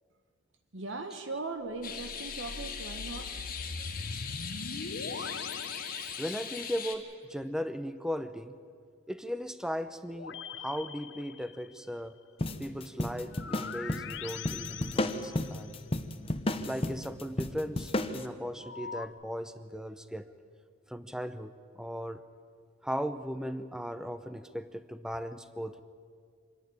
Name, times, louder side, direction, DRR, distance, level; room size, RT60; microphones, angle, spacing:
voice 1, 0.7-3.4, right 3 dB, 65° right, 6 dB, 1.2 m, -39 dB
sound 1, 1.7-6.8 10.1-11.9 13.3-15.9 18.6-19.1, left 5 dB, 60° left, 0.7 m, -42 dB
sound 2, 1.8-7.0, left 6 dB, 45° left, 1.7 m, -40 dB
voice 2, 5.0-5.3 6.2-8.6 9.1-12.2 12.6-15.7 16.6-20.3 20.9-22.2 22.8-25.8, equal, 5° right, 11 dB, 0.6 m, -37 dB
sound 3, 12.4-18.2, left 1 dB, 25° left, 0.8 m, -33 dB
25.5 x 11.0 x 9.9 m, 2.1 s
head